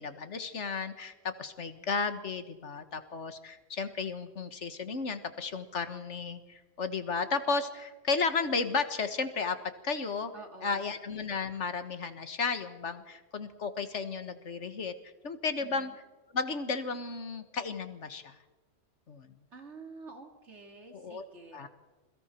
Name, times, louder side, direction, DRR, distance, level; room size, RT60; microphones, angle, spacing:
voice 1, 0.0-9.6 9.8-10.3 10.6-14.9 15.2-15.9 16.3-18.4 19.1-19.3 20.9-21.2 21.5-21.7, left 4 dB, 75° left, 10 dB, 1.8 m, -33 dB
voice 2, 10.3-10.9 15.6-16.0 19.5-21.7, right 3 dB, 75° right, 4 dB, 3.0 m, -49 dB
28.0 x 22.5 x 4.5 m, 1.2 s
omnidirectional pair, 1.2 m